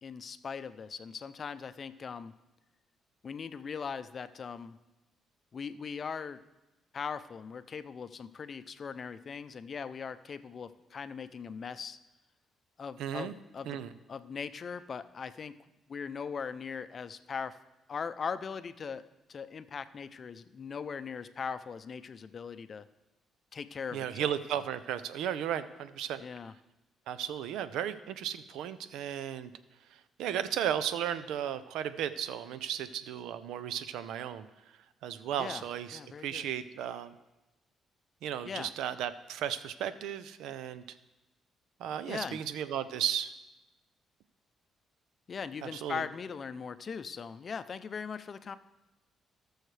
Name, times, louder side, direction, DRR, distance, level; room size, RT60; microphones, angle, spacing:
voice 1, 0.0-2.3 3.2-4.8 5.5-6.4 6.9-12.0 12.8-13.8 14.1-15.5 15.9-17.6 17.9-22.9 23.5-24.3 26.2-26.5 35.4-35.7 35.9-36.4 38.4-38.7 42.1-42.4 45.3-48.6, left 6 dB, 45° left, 12 dB, 0.5 m, -40 dB
voice 2, 13.0-13.3 13.7-13.9 23.9-26.2 27.1-29.5 30.2-34.5 35.0-37.1 38.2-40.8 41.8-43.3 45.6-46.0, right 9 dB, 90° right, 13 dB, 0.5 m, -35 dB
18.5 x 6.4 x 3.3 m, 1.0 s
cardioid pair, 90°, 0 cm